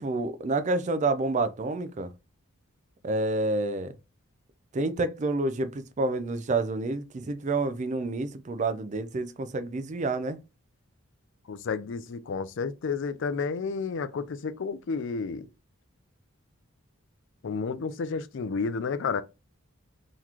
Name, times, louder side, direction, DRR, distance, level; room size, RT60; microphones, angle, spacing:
voice 1, 0.0-2.1 3.0-3.9 4.7-10.4, right 2 dB, 35° right, 0.4 m, -28 dB
voice 2, 11.5-15.5 17.4-19.2, left 5 dB, 55° left, 0.4 m, -31 dB
3.9 x 3.1 x 2.8 m
head